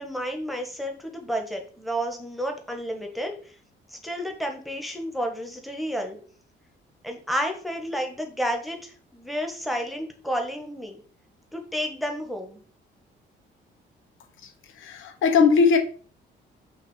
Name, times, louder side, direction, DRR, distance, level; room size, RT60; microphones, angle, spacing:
voice 1, 0.0-3.3 3.9-6.2 7.0-11.0 11.5-12.6, equal, ahead, 1.4 m, -31 dB
voice 2, 14.8-15.8, left 5 dB, 80° left, 1.1 m, -19 dB
5.9 x 2.9 x 5.6 m
cardioid pair, 90°, 20 cm